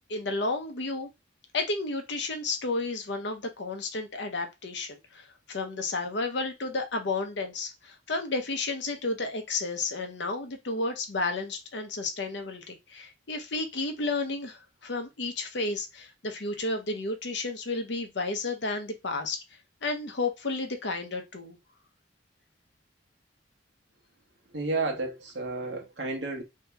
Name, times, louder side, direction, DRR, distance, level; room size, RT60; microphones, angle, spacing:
voice 1, 0.1-1.1 1.5-19.4 19.8-21.6, left 3 dB, 65° left, 0.7 m, -32 dB
voice 2, 24.5-26.4, right 3 dB, 65° right, 0.9 m, -31 dB
3.0 x 2.8 x 3.4 m
head